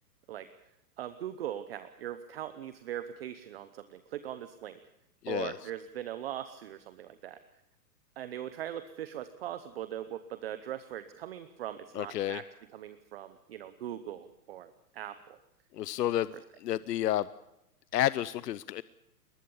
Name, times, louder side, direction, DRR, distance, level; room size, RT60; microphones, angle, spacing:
voice 1, 1.0-4.8 5.3-7.4 8.2-12.5 12.7-15.4, right 11 dB, 40° right, 12 dB, 0.9 m, -40 dB
voice 2, 5.2-5.6 12.0-12.4 15.7-16.3 16.6-17.3 17.9-18.8, left 13 dB, 80° left, 17 dB, 0.8 m, -30 dB
22.0 x 20.0 x 7.1 m, 0.86 s
hypercardioid pair, 170°, 48 cm